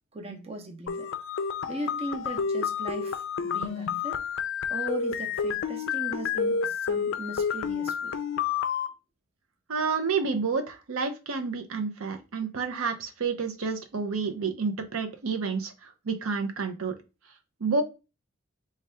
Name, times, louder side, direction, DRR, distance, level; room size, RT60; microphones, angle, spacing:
voice 1, 0.1-1.1 1.7-4.3 4.7-8.1, right 2 dB, 30° right, 0.6 m, -38 dB
sound 1, 0.9-8.9, left 7 dB, 65° left, 0.4 m, -30 dB
voice 2, 9.7-17.0 17.6-17.8, right 4 dB, 85° right, 0.6 m, -29 dB
3.3 x 2.3 x 4.2 m
head